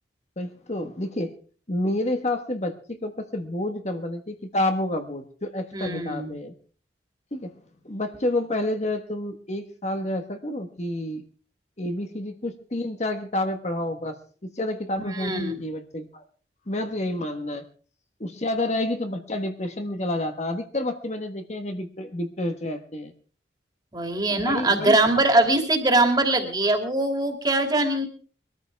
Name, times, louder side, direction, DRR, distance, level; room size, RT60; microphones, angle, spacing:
voice 1, 0.4-1.4 1.7-6.5 7.3-7.5 7.8-11.2 11.8-14.2 14.5-16.2 16.7-17.6 18.2-23.1 24.3-25.0, left 1 dB, 40° left, 6 dB, 1.4 m, -29 dB
voice 2, 5.7-6.3 15.1-15.6 23.9-28.1, right 2 dB, 25° right, 4 dB, 2.6 m, -22 dB
23.0 x 13.5 x 3.4 m, 0.40 s
head